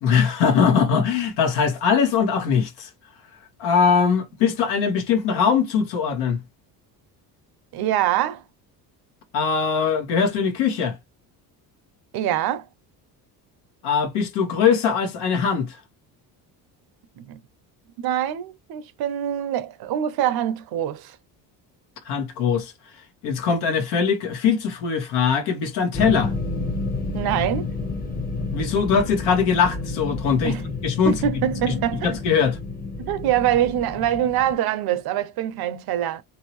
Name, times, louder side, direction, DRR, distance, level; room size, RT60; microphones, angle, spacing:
voice 1, 0.0-2.9 3.6-6.4 9.3-11.0 13.8-15.8 22.0-22.7 23.2-26.3 28.5-30.6 30.8-31.3 31.7-31.8 32.0-32.6, left 6 dB, 85° left, 1.1 m, -21 dB
voice 2, 7.7-8.4 12.1-12.7 17.2-17.4 18.0-21.2 27.1-27.7 30.4-30.6 31.1-32.1 33.0-36.2, right 11 dB, 65° right, 0.6 m, -24 dB
sound 1, 25.9-34.5, left 3 dB, 20° left, 0.7 m, -30 dB
3.0 x 2.7 x 3.0 m
cardioid pair, 105°, 41 cm